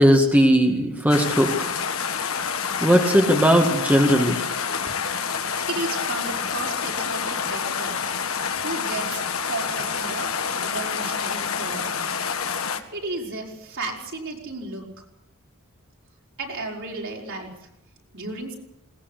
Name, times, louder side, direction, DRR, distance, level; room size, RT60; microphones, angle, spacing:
voice 1, 0.0-1.7 2.8-4.4, equal, 10° right, 2 dB, 2.0 m, -18 dB
sound 1, 1.1-12.8, left 6 dB, 70° left, 1.8 m, -28 dB
voice 2, 5.5-11.9 12.7-14.9 16.4-17.5 18.1-18.6, right 2 dB, 60° right, -1 dB, 5.5 m, -34 dB
21.0 x 19.0 x 8.4 m, 0.80 s
head